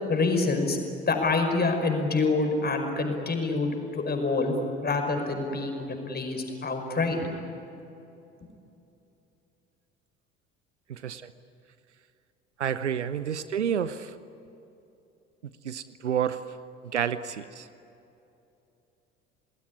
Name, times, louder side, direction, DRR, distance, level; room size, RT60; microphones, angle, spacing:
voice 1, 0.1-0.8 1.1-4.5 4.8-7.3, left 3 dB, 30° left, 4 dB, 5.4 m, -26 dB
voice 2, 10.9-11.3 12.6-14.1 15.6-16.4 16.9-17.7, right 8 dB, 85° right, 14 dB, 0.8 m, -29 dB
29.5 x 20.0 x 9.9 m, 2.8 s
figure-of-eight pair, 60°, 34 cm